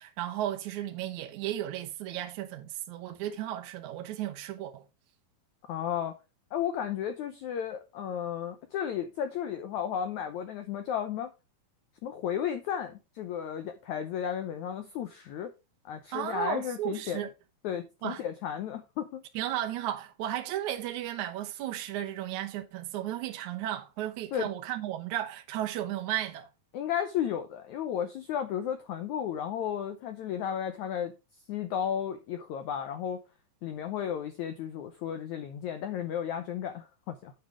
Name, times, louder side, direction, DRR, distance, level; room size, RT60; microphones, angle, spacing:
voice 1, 0.0-4.8 16.1-17.3 18.0-18.2 19.4-26.5, right 12 dB, 70° right, 1.8 m, -34 dB
voice 2, 5.7-6.2 6.5-11.3 12.0-15.5 15.8-17.3 17.6-19.2 24.3-24.4 26.7-31.1 31.5-33.2 33.6-37.3, left 9 dB, 85° left, 1.7 m, -33 dB
9.3 x 5.4 x 5.0 m
omnidirectional pair, 4.5 m